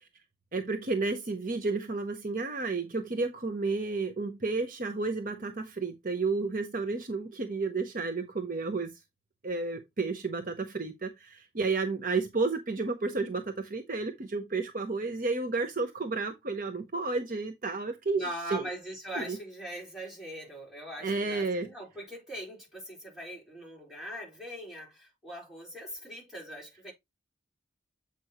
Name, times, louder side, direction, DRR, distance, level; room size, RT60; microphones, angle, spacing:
voice 1, 0.5-9.0 9.4-18.2 18.5-18.6 19.1-19.4 21.0-21.7, right 3 dB, 45° right, 0.8 m, -31 dB
voice 2, 18.1-26.9, equal, 5° right, 3.9 m, -41 dB
8.0 x 5.2 x 2.9 m
head